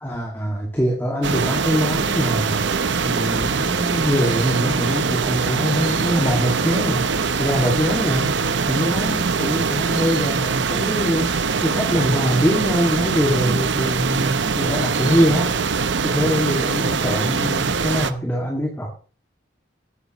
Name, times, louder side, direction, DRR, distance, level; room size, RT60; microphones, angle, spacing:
voice 1, 0.0-2.7 3.0-7.0 7.4-8.3 8.7-11.3 11.6-15.6 16.0-18.9, equal, 10° left, -1 dB, 2.0 m, -23 dB
sound 1, 1.2-18.1, right 5 dB, 65° right, 0.7 m, -22 dB
15.0 x 9.8 x 3.0 m, 0.38 s
head